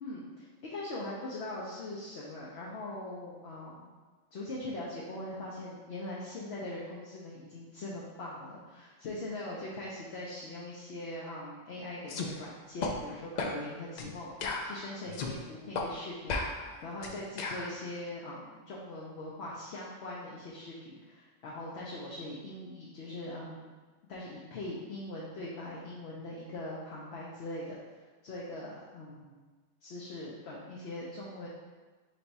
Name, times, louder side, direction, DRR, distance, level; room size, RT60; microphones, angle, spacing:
voice 1, 0.0-3.9 4.3-23.7 24.1-29.4 29.8-31.5, left 1 dB, 65° left, -5 dB, 0.9 m, -41 dB
sound 1, 12.1-12.3 12.8-12.9 13.4-13.6 14.0-14.1 14.4-15.3 15.7-15.9 16.3-17.7, left 3 dB, 90° left, 0.3 m, -34 dB
3.4 x 3.3 x 4.0 m, 1.4 s
omnidirectional pair, 1.3 m